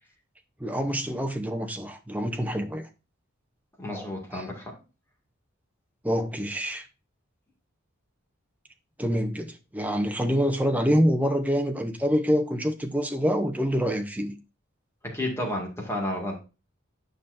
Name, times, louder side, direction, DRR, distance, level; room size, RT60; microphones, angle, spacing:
voice 1, 0.6-2.9 3.9-4.4 6.0-6.9 9.0-14.4, equal, 5° right, 0.7 m, -26 dB
voice 2, 3.8-4.7 15.0-16.4, left 1 dB, 10° left, 2.0 m, -31 dB
9.0 x 5.7 x 2.6 m
head